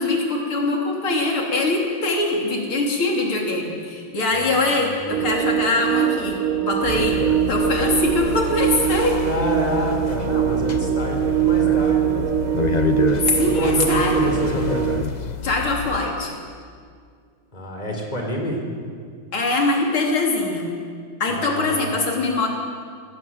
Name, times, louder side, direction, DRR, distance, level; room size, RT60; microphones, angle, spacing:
voice 1, 0.0-7.2 7.5-9.2 13.4-14.4 15.4-16.3 19.3-20.7 21.2-22.5, left 2 dB, 85° left, 0 dB, 4.1 m, -22 dB
voice 2, 4.3-5.0 9.3-12.3 13.5-14.9 17.5-18.6 21.3-21.9, equal, 20° left, 1 dB, 4.3 m, -28 dB
sound 1, 5.1-15.0, right 11 dB, 65° right, 0.8 m, -22 dB
sound 2, 6.8-16.0, left 6 dB, 40° left, 0.6 m, -28 dB
27.0 x 19.5 x 7.9 m, 2.1 s
omnidirectional pair, 2.3 m